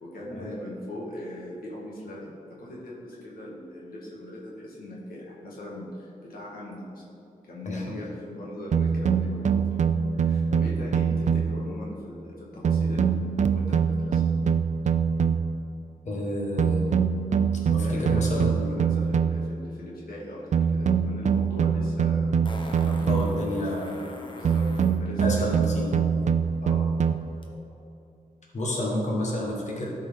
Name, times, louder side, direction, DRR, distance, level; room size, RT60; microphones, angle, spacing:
voice 1, 0.0-7.0 7.4-9.6 10.1-13.2 13.5-14.2 17.8-22.3 22.7-23.7 23.9-26.0 26.6-26.9, left 1 dB, 85° left, -5 dB, 1.7 m, -40 dB
voice 2, 7.6-8.0 16.0-16.8 17.7-18.8 23.1-23.9 25.2-25.9 28.5-29.9, left 1 dB, 55° left, -3 dB, 1.6 m, -30 dB
sound 1, 8.7-11.7 12.6-15.7 16.6-19.6 20.5-23.5 24.5-27.2, right 6 dB, 55° right, 0.4 m, -24 dB
Fart, 21.3-21.4 22.4-25.0 27.4-27.5, left 1 dB, 35° left, 1.0 m, -43 dB
12.5 x 4.4 x 3.7 m, 2.7 s
cardioid pair, 75°, 15 cm